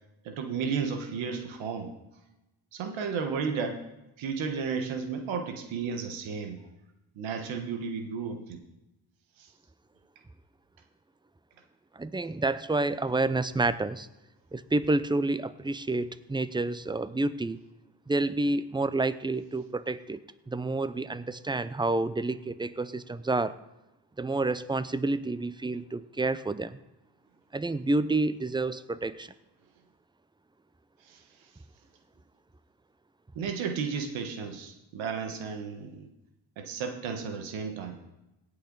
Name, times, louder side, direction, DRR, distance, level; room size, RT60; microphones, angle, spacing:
voice 1, 0.2-1.9 2.7-3.8 4.2-6.6 7.2-8.6 9.4-9.5 31.0-31.2 33.3-36.1 36.6-38.0, right 5 dB, 90° right, 5 dB, 1.4 m, -33 dB
voice 2, 12.0-14.1 14.5-17.6 18.1-20.2 20.5-23.6 24.2-26.8 27.5-29.3, right 2 dB, 10° right, 15 dB, 0.6 m, -29 dB
17.5 x 6.8 x 4.0 m, 0.95 s
supercardioid pair, 60°, 45 cm